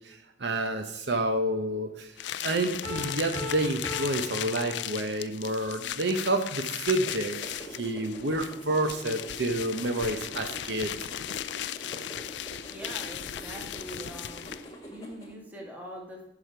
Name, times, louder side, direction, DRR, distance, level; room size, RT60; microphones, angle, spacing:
voice 1, 0.0-2.1 2.4-10.9, right 1 dB, 65° right, 6 dB, 0.8 m, -29 dB
sound 1, 2.2-14.8, left 11 dB, 70° left, 0.4 m, -37 dB
Piano, 2.8-5.4, left 3 dB, 35° right, 2.0 m, -39 dB
sound 2, 7.1-15.3, right 1 dB, 20° left, 1.5 m, -45 dB
voice 2, 12.7-14.5 14.9-16.3, equal, 10° right, -2 dB, 1.7 m, -43 dB
10.5 x 5.0 x 4.4 m, 0.91 s
head